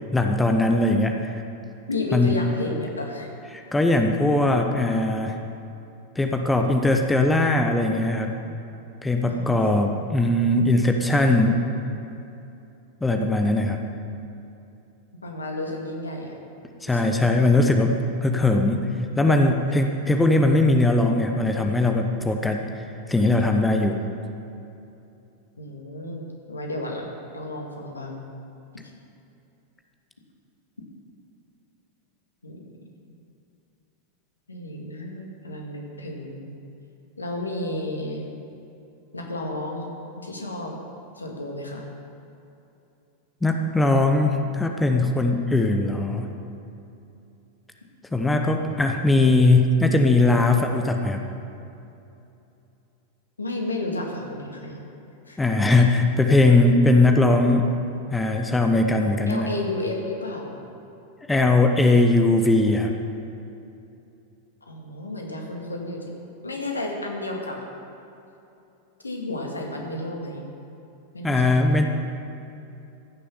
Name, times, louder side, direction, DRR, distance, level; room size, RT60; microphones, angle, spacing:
voice 1, 0.1-1.4 2.1-2.3 3.5-5.3 6.2-8.3 9.0-11.6 13.0-13.8 16.8-18.9 19.2-24.0 43.4-46.3 48.1-51.2 55.4-57.7 58.1-59.5 61.3-62.9 71.2-71.8, left 2 dB, 10° left, 4 dB, 0.9 m, -20 dB
voice 2, 1.9-3.3 9.2-9.7 15.2-16.4 16.9-17.3 25.6-28.2 32.4-32.6 34.5-36.5 37.2-38.3 39.1-39.9 40.2-40.8 41.2-41.8 53.4-54.8 55.3-55.4 59.3-60.5 64.7-66.0 66.4-67.6 69.0-70.5 71.1-71.7, left 2 dB, 80° left, 1 dB, 1.9 m, -32 dB
15.0 x 6.8 x 7.1 m, 2.8 s
figure-of-eight pair, 90°, 0 cm